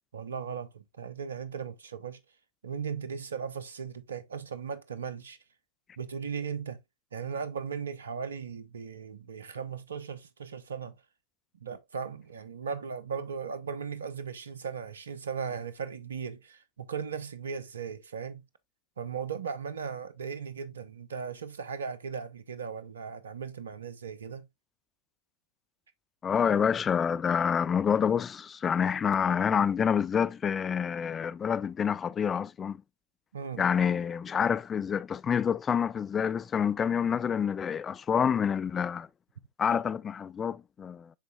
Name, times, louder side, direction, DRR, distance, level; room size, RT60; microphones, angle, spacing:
voice 1, 0.1-2.2 2.6-5.4 6.0-6.8 7.1-11.0 11.6-18.4 19.0-24.5 33.3-33.7, right 6 dB, 80° right, 0.8 m, -37 dB
voice 2, 26.2-32.8 33.6-39.1 39.6-41.1, left 7 dB, 25° left, 0.4 m, -27 dB
11.5 x 4.1 x 2.3 m
hypercardioid pair, 95°, 0 cm